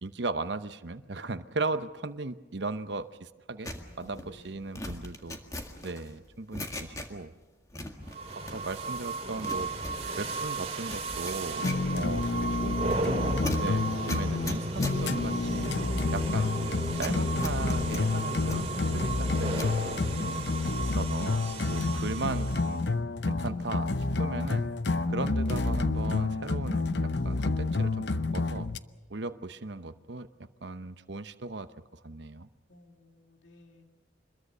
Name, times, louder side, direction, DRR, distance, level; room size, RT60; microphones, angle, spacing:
voice 1, 0.0-3.7 4.0-5.4 5.8-7.3 8.3-9.7 10.2-11.7 11.9-15.7 16.1-20.4 20.8-22.8 23.3-24.7 25.1-28.7 29.1-30.3 30.6-32.5, right 3 dB, 65° right, 11 dB, 0.9 m, -37 dB
sound 1, 3.6-7.4 7.7-8.9 9.2-19.8 20.2-21.0 21.3-21.6, left 1 dB, 15° left, 1.8 m, -41 dB
voice 2, 4.0-4.5 7.7-8.2 21.6-22.0 32.7-33.8, equal, 85° left, 4 dB, 2.2 m, -54 dB
sound 2, 8.1-22.9, right 3 dB, 35° right, 2.3 m, -35 dB
sound 3, 11.6-28.8, left 3 dB, 65° left, 0.7 m, -29 dB
26.0 x 21.5 x 6.8 m, 1.1 s
head